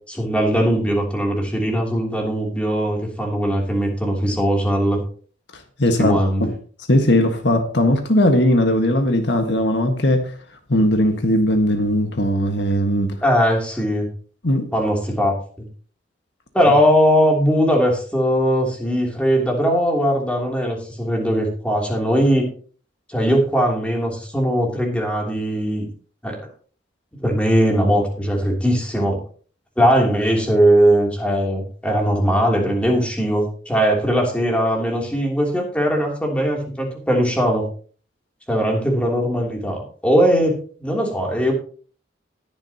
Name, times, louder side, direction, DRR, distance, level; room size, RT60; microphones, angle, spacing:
voice 1, 0.1-5.0 6.0-6.4 13.2-14.1 14.7-15.3 16.5-22.5 23.1-25.9 26.2-26.4 27.2-29.2 29.8-37.6 38.5-39.8 40.0-40.5 40.8-41.5, equal, 5° left, 3.1 m, -19 dB
voice 2, 5.8-6.5 6.9-10.3 10.7-13.2 14.4-14.7, left 1 dB, 70° left, 1.6 m, -18 dB
20.0 x 7.2 x 2.9 m
head